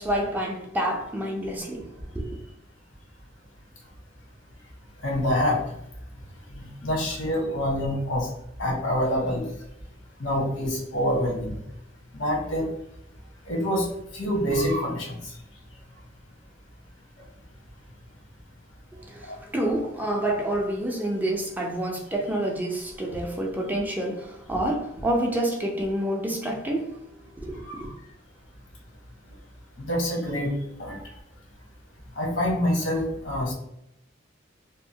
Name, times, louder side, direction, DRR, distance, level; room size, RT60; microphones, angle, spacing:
voice 1, 0.0-2.4 18.9-26.9 27.4-27.9, right 1 dB, 10° right, 0.3 m, -28 dB
voice 2, 5.0-5.6 6.5-8.3 8.6-9.4 10.2-11.6 12.1-12.7 13.5-13.9 14.1-15.1 19.3-19.4 27.7-27.8 29.8-30.5 30.8-31.0 32.2-33.5, equal, 85° left, 1.0 m, -26 dB
2.8 x 2.1 x 2.6 m
head